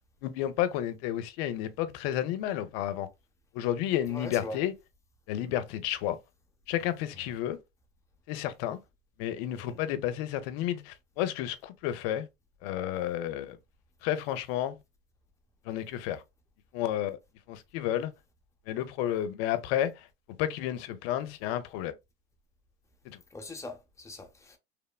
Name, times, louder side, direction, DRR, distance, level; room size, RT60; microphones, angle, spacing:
voice 1, 0.2-3.1 3.5-4.7 5.3-6.2 6.7-7.6 8.3-8.8 9.2-12.3 12.6-13.6 14.0-14.7 15.7-16.2 16.7-17.2 17.5-18.1 18.7-19.9 20.4-21.9 23.1-23.2, left 12 dB, 60° left, 0.6 m, -31 dB
voice 2, 4.1-4.6 7.1-7.3 9.5-9.8 23.3-24.6, left 2 dB, 10° left, 0.6 m, -42 dB
3.1 x 2.0 x 2.2 m
hypercardioid pair, 95°, 33 cm